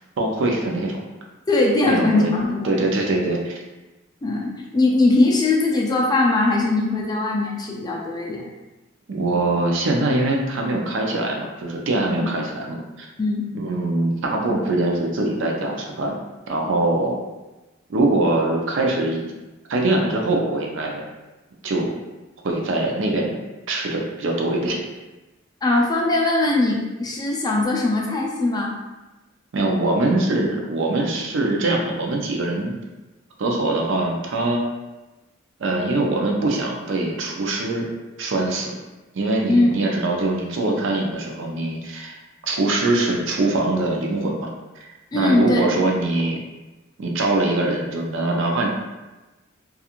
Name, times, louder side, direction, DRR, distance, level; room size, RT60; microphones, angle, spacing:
voice 1, 0.2-1.0 1.9-2.3 2.6-3.6 9.1-13.1 13.5-16.2 16.5-17.2 17.9-19.3 19.7-21.0 21.6-21.9 22.4-23.3 23.7-24.8 29.5-32.7 33.4-34.6 35.6-37.9 38.2-38.7 39.1-42.2 42.5-44.5 45.1-46.4 47.0-48.7, right 2 dB, 65° right, 0 dB, 0.5 m, -22 dB
voice 2, 1.5-2.8 4.2-8.4 12.2-12.3 13.2-13.4 25.6-28.7 39.5-39.7 45.1-45.7, left 2 dB, 20° left, -2 dB, 0.3 m, -20 dB
2.4 x 2.4 x 2.8 m, 1.1 s
head